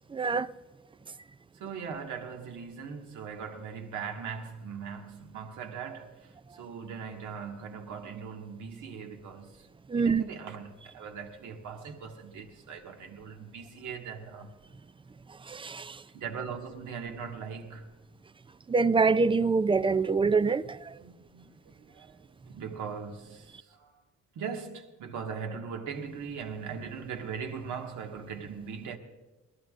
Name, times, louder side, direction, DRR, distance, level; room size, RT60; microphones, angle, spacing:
voice 1, 0.1-0.5 9.9-10.2 15.5-16.0 18.7-20.9, right 4 dB, 15° right, 0.4 m, -25 dB
voice 2, 1.5-9.7 10.0-14.5 16.1-17.9 21.0-23.9 24.3-29.0, right 6 dB, 80° right, 1.7 m, -40 dB
22.0 x 18.0 x 2.5 m
cardioid pair, 90°, 30 cm